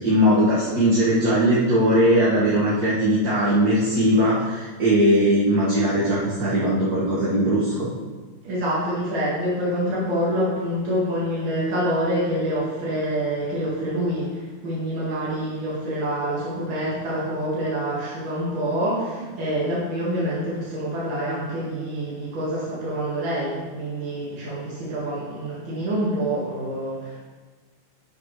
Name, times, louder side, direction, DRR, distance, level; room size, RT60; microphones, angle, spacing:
voice 1, 0.0-7.9, equal, 45° right, -9 dB, 2.4 m, -19 dB
voice 2, 8.4-27.2, equal, 70° right, -7 dB, 2.8 m, -26 dB
11.0 x 8.4 x 3.3 m, 1.3 s
omnidirectional pair, 2.3 m